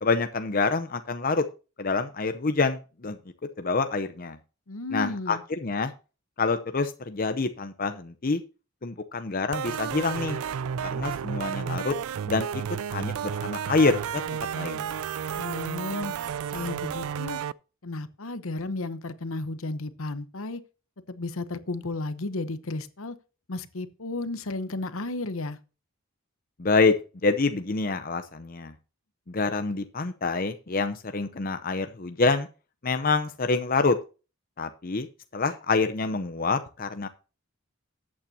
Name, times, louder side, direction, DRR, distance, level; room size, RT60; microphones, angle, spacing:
voice 1, 0.0-1.4 1.8-3.2 3.6-4.4 4.9-5.9 6.4-8.4 8.8-10.4 10.8-11.9 12.3-14.2 14.5-14.9 26.6-26.9 27.2-28.7 29.3-32.5 32.8-34.0 34.6-35.1 35.3-37.1, left 3 dB, 40° left, 0.7 m, -26 dB
voice 2, 4.7-5.4 15.4-16.1 16.5-17.4 17.8-20.6 21.1-23.2 23.5-25.6, left 2 dB, 70° left, 0.9 m, -33 dB
sound 1, 9.5-17.5, right 8 dB, 80° right, 0.4 m, -32 dB
13.5 x 8.7 x 2.8 m
head